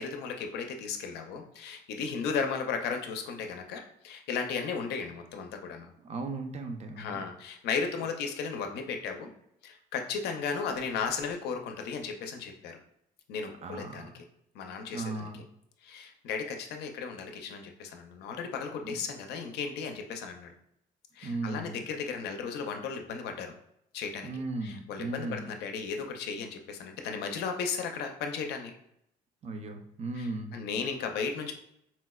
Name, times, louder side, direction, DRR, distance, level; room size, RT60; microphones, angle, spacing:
voice 1, 0.0-5.9 7.0-9.3 9.6-12.8 13.3-14.2 14.5-15.3 15.8-20.5 21.2-23.5 23.9-24.3 24.6-28.7 30.2-31.5, left 5 dB, 80° left, 4 dB, 0.5 m, -35 dB
voice 2, 6.0-7.2 13.6-14.2 14.9-15.4 18.8-19.0 21.2-21.8 24.2-25.5 29.4-30.5, right 2 dB, 40° right, 5 dB, 0.5 m, -36 dB
4.1 x 2.1 x 2.3 m, 0.75 s
cardioid pair, 110°, 17 cm